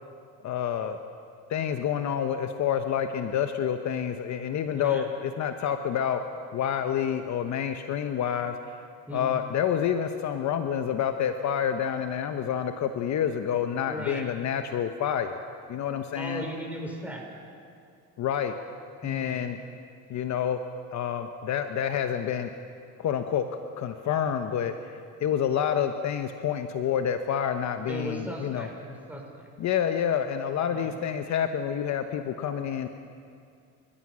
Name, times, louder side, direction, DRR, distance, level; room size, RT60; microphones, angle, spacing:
voice 1, 0.4-1.0 1.5-6.2 6.5-8.8 9.1-15.4 15.7-16.4 18.2-18.5 19.0-19.6 20.1-20.6 20.9-22.5 23.0-23.5 23.8-28.7 29.6-32.9, left 9 dB, 50° left, 7 dB, 1.1 m, -28 dB
voice 2, 9.1-9.4 13.9-14.2 16.2-17.2 19.0-19.4 27.9-29.5 30.7-30.9, equal, 5° right, 0 dB, 5.2 m, -37 dB
29.5 x 14.0 x 6.3 m, 2.3 s
cardioid pair, 110°, 36 cm